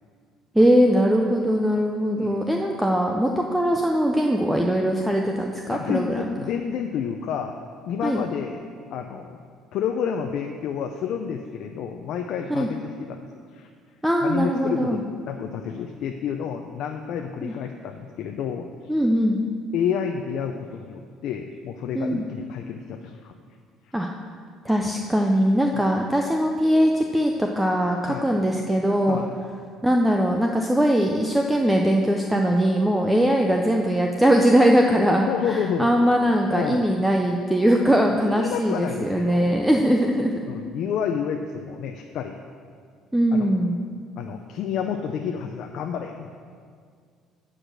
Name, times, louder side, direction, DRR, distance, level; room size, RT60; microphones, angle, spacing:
voice 1, 0.5-6.3 8.0-8.2 12.5-12.7 14.0-15.0 17.4-17.5 18.9-19.4 21.9-22.2 23.9-24.1 24.7-29.2 29.8-40.3 43.1-43.8, equal, 5° right, 1 dB, 0.4 m, -21 dB
voice 2, 2.1-2.8 5.7-7.6 7.9-9.4 9.7-13.2 13.5-13.7 14.2-15.0 15.3-18.7 19.7-23.3 23.8-23.9 25.7-25.8 28.1-28.3 29.1-29.4 35.3-35.9 36.5-36.9 38.2-39.6 40.5-42.4 43.3-43.5 44.2-46.3, left 7 dB, 55° left, 4 dB, 0.5 m, -30 dB
8.7 x 4.9 x 7.6 m, 2.1 s
cardioid pair, 160°, 0 cm